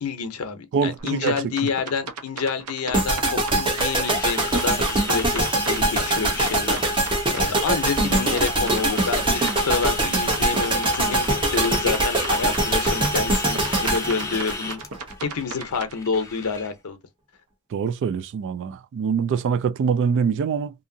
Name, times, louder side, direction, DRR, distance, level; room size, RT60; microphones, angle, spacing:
voice 1, 0.0-3.2 3.6-6.8 7.3-14.8 15.2-17.0, left 5 dB, 85° left, 0.6 m, -28 dB
voice 2, 0.7-1.3 17.7-20.7, right 6 dB, 55° right, 0.3 m, -24 dB
sound 1, 1.0-15.9, right 4 dB, 85° right, 0.7 m, -36 dB
sound 2, 2.9-15.1, right 2 dB, 25° right, 0.8 m, -23 dB
sound 3, 3.3-16.7, left 3 dB, 15° left, 0.5 m, -34 dB
2.8 x 2.5 x 2.6 m
head